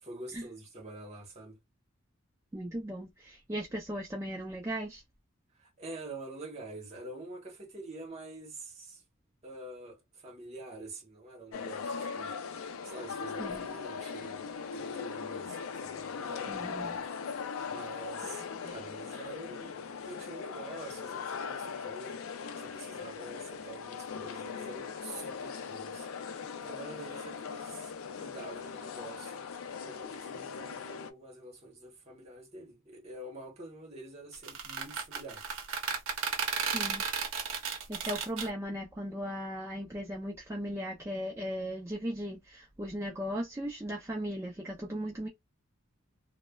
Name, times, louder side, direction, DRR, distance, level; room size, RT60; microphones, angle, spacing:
voice 1, 0.0-1.6 5.5-9.0 9.4-12.3 12.8-14.5 14.7-17.1 17.7-19.8 20.0-26.1 26.3-29.5 29.8-35.4, right 2 dB, 30° right, 1.0 m, -47 dB
voice 2, 2.5-5.0 13.4-13.7 16.5-17.0 18.2-18.3 18.6-18.7 36.7-37.1 37.9-45.3, equal, 15° right, 0.4 m, -37 dB
sound 1, 11.5-31.1, left 6 dB, 75° left, 0.4 m, -39 dB
sound 2, 34.3-38.5, right 6 dB, 65° right, 0.7 m, -34 dB
3.1 x 2.0 x 2.2 m
head